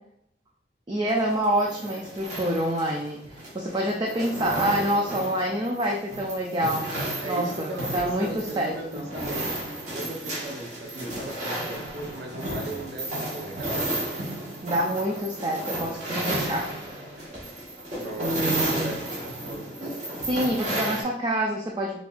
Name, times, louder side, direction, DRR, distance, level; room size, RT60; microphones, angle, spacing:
voice 1, 0.9-9.1 14.6-16.7 18.2-19.0 19.8-20.0 20.2-22.0, right 1 dB, 25° right, -1 dB, 0.4 m, -27 dB
sound 1, 1.1-21.0, right 1 dB, 45° right, 1.2 m, -33 dB
voice 2, 4.3-4.9 7.2-9.5 9.8-13.9 17.9-19.6, right 2 dB, 65° right, 0 dB, 0.8 m, -37 dB
5.1 x 2.4 x 2.5 m, 0.72 s
head